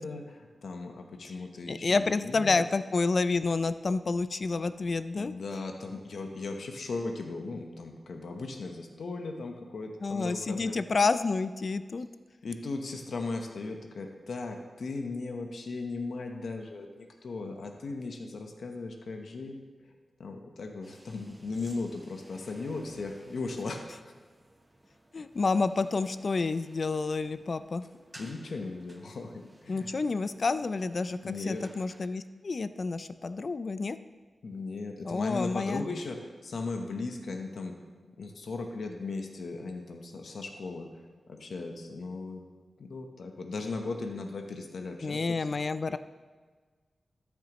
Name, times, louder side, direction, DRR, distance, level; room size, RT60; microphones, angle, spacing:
voice 1, 0.0-2.7 5.2-10.8 12.4-19.6 20.2-23.9 28.2-29.9 31.2-31.6 34.4-37.8 38.0-42.4 42.8-45.6, left 3 dB, 80° left, 4 dB, 1.0 m, -37 dB
voice 2, 1.7-5.3 10.0-12.1 25.1-27.9 29.7-31.2 31.5-34.0 35.0-35.9 45.0-46.0, left 4 dB, 50° left, 13 dB, 0.4 m, -29 dB
sound 1, 20.8-32.1, right 1 dB, 15° right, 0.9 m, -57 dB
13.5 x 7.1 x 3.0 m, 1.5 s
wide cardioid pair, 90°, 0 cm